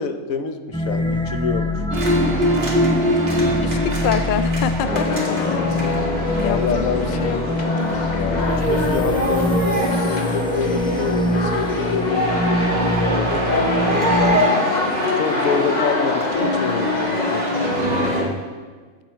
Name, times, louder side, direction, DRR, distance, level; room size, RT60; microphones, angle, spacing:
voice 1, 0.0-1.7 6.4-7.1 8.1-13.4 14.1-14.7 15.2-17.4, left 6 dB, 80° left, 8 dB, 1.3 m, -26 dB
sound 1, 0.7-14.4, equal, 5° left, 0.4 m, -24 dB
sound 2, 1.9-18.2, equal, 45° right, 2.1 m, -25 dB
voice 2, 3.6-5.7 6.3-6.8 7.2-7.4, left 8 dB, 60° left, 12 dB, 0.5 m, -26 dB
sound 3, 4.8-18.3, left 3 dB, 35° left, 1.1 m, -24 dB
14.5 x 9.0 x 4.6 m, 1.5 s
omnidirectional pair, 1.4 m